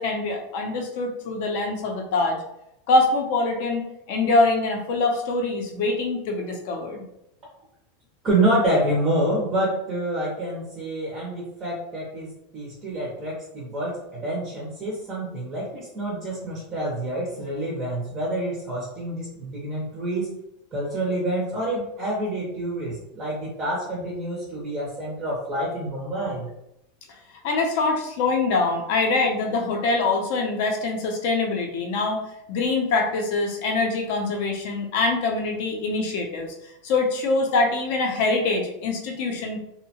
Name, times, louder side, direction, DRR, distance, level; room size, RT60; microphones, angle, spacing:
voice 1, 0.0-2.4 2.9-3.8 4.1-7.0 27.4-36.5 36.8-39.6, left 3 dB, 50° left, 2 dB, 0.5 m, -24 dB
voice 2, 8.2-20.3 20.7-26.5, right 1 dB, 20° right, -4 dB, 0.5 m, -27 dB
2.7 x 2.1 x 2.7 m, 0.81 s
supercardioid pair, 175°, 0 cm